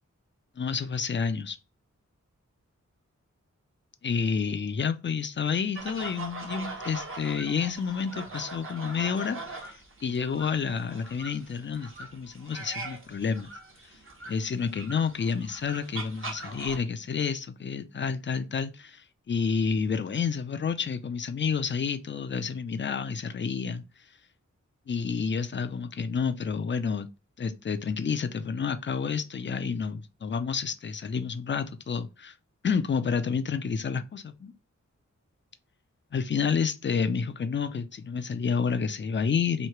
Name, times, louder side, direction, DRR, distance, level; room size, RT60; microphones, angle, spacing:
voice 1, 0.6-1.6 4.0-13.5 14.3-23.8 24.9-27.1 27.4-32.3 32.6-34.5 36.1-39.7, left 6 dB, 40° left, 0.4 m, -29 dB
sound 1, 5.7-16.8, right 3 dB, 45° right, 1.0 m, -41 dB
3.1 x 2.8 x 4.4 m
wide cardioid pair, 100°, 30 cm